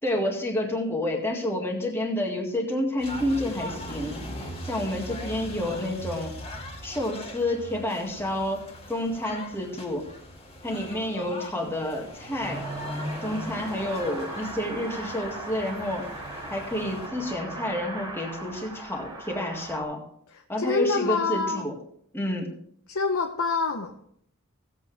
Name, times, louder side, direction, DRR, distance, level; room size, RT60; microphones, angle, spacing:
voice 1, 0.0-4.3 4.6-6.3 6.8-10.1 10.6-12.6 13.2-16.1 16.5-20.0 20.5-21.7 22.1-22.5, left 1 dB, 10° left, 0 dB, 1.9 m, -29 dB
sound 1, 3.0-17.1, left 1 dB, 25° left, 1.9 m, -41 dB
Car passing by / Accelerating revving vroom, 12.4-19.8, right 1 dB, 15° right, 2.7 m, -37 dB
voice 2, 20.3-21.6 22.9-23.9, left 4 dB, 70° left, 4 dB, 0.8 m, -26 dB
16.5 x 8.3 x 3.3 m, 0.68 s
head